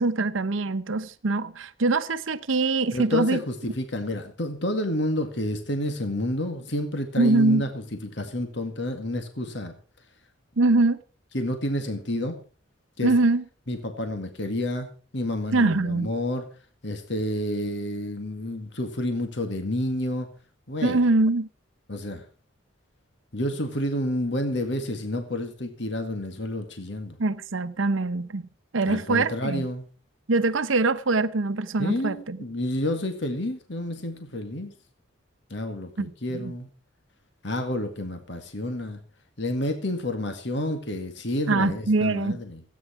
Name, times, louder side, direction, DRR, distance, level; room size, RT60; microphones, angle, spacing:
voice 1, 0.0-3.4 7.2-7.6 10.6-11.0 13.0-13.4 15.5-16.1 20.8-21.5 27.2-28.5 28.7-29.7 30.3-32.4 36.0-36.5 41.5-42.4, right 3 dB, 80° right, 0.8 m, -23 dB
voice 2, 2.9-9.7 11.3-12.4 13.0-13.1 13.7-16.5 16.8-20.3 20.7-21.0 21.9-22.2 23.3-27.2 28.9-29.9 31.8-34.7 35.5-36.7 37.4-39.0 39.4-42.6, left 1 dB, 60° left, 2.0 m, -29 dB
16.5 x 9.4 x 5.8 m
head